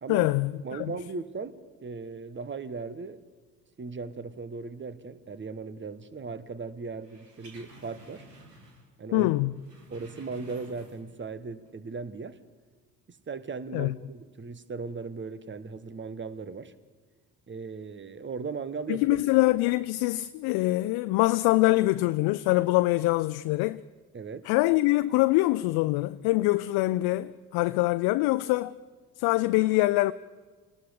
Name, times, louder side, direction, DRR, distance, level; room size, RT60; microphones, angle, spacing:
voice 1, 0.1-0.9 9.1-9.5 13.7-13.9 18.9-23.8 24.5-28.7 29.2-30.1, left 19 dB, 50° left, 0.6 m, -24 dB
voice 2, 0.6-3.2 3.8-8.2 9.0-9.5 9.9-12.4 13.1-16.7 17.5-19.0 24.1-24.5, right 4 dB, 25° right, 1.3 m, -38 dB
sound 1, 7.0-9.0 9.2-11.2 11.6-11.7, right 2 dB, 85° right, 2.3 m, -52 dB
29.0 x 19.0 x 5.0 m
figure-of-eight pair, 50°, 48 cm